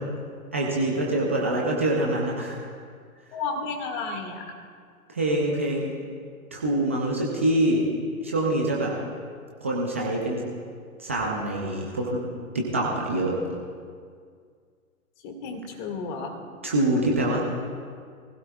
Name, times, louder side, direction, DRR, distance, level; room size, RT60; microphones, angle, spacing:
voice 1, 0.5-2.6 5.1-5.9 6.5-7.8 8.2-9.0 9.6-10.4 11.0-12.2 12.5-13.3 16.6-17.4, right 1 dB, 10° right, -3 dB, 0.3 m, -25 dB
voice 2, 3.3-4.5 15.2-16.4, left 4 dB, 35° left, 3 dB, 2.0 m, -32 dB
23.0 x 16.0 x 2.3 m, 2.1 s
hypercardioid pair, 130°, 43 cm